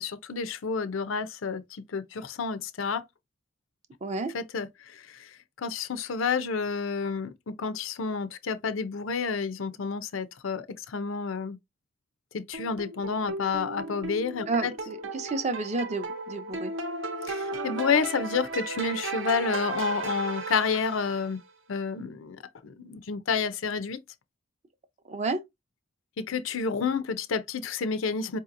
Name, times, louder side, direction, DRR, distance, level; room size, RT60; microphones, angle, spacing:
voice 1, 0.0-3.0 4.3-11.6 12.3-14.7 17.2-21.4 21.7-22.4 22.6-24.0 26.2-28.4, left 5 dB, 80° left, 0.5 m, -30 dB
voice 2, 4.0-4.3 14.5-16.7 25.1-25.4, right 3 dB, 35° right, 0.5 m, -30 dB
sound 1, 12.5-21.4, right 3 dB, 70° right, 0.8 m, -35 dB
4.6 x 2.8 x 2.5 m
head